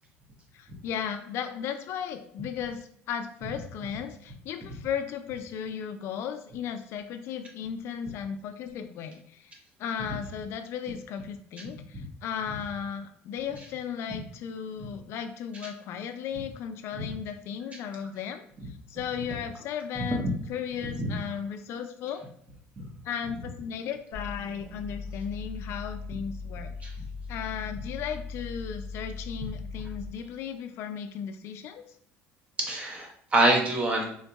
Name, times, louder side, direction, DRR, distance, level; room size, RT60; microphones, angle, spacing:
voice 1, 0.5-9.5 9.8-22.2 23.0-26.7 27.3-31.8, left 8 dB, 60° left, 8 dB, 0.3 m, -35 dB
sound 1, 24.1-30.3, left 4 dB, 90° right, 0.9 m, -39 dB
voice 2, 32.6-34.0, right 2 dB, 25° right, 1 dB, 0.9 m, -25 dB
3.8 x 2.6 x 2.3 m, 0.66 s
cardioid pair, 115°, 5 cm